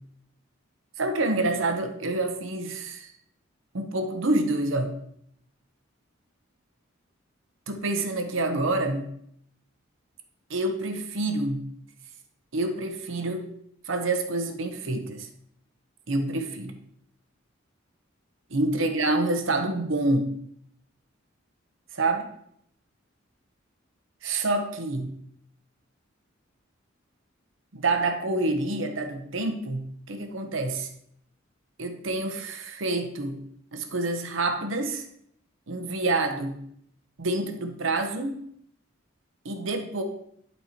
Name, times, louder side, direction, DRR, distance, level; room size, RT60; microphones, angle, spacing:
voice 1, 1.0-3.1 3.7-4.9 7.7-9.1 10.5-11.6 12.5-13.5 13.8-15.3 16.1-16.8 18.5-20.3 21.9-22.3 24.2-25.1 27.7-30.9 31.8-33.4 33.7-35.0 35.7-36.6 37.2-38.4 39.4-40.0, right 2 dB, 75° right, 5 dB, 0.9 m, -27 dB
11.5 x 4.3 x 3.0 m, 0.70 s
head